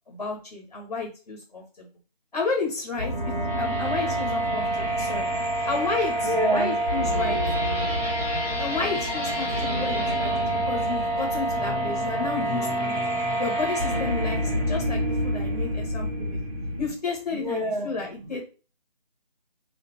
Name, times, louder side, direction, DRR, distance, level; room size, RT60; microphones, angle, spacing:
voice 1, 0.1-1.9 2.3-5.3 5.6-7.4 8.6-13.0 13.4-16.4 16.8-18.4, left 4 dB, 45° left, 0 dB, 1.2 m, -32 dB
sound 1, 2.9-16.9, right 1 dB, 5° left, 0.9 m, -27 dB
voice 2, 4.4-5.5 6.2-6.8 7.7-8.0 9.4-9.6 10.3-11.0 11.7-12.3 12.8-13.4 15.5-16.8 17.3-17.9, right 1 dB, 50° right, 2 dB, 0.8 m, -33 dB
4.1 x 2.8 x 3.3 m, 0.34 s
figure-of-eight pair, 160°, 31 cm